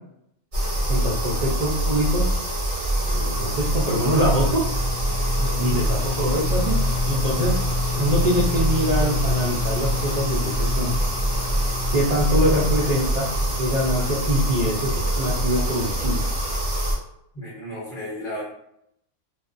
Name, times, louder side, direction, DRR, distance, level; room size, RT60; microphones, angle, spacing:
sound 1, 0.5-16.9, right 1 dB, 35° right, 0.7 m, -24 dB
voice 1, 0.9-2.2 3.1-4.6 5.6-6.8 7.1-10.9 11.9-16.2, equal, 90° right, -7 dB, 0.3 m, -24 dB
sound 2, 2.6-14.4, left 6 dB, 90° left, 1.0 m, -32 dB
voice 2, 5.4-5.8 17.3-18.4, equal, 40° left, -6 dB, 1.2 m, -33 dB
2.6 x 2.3 x 2.4 m, 0.75 s
omnidirectional pair, 1.4 m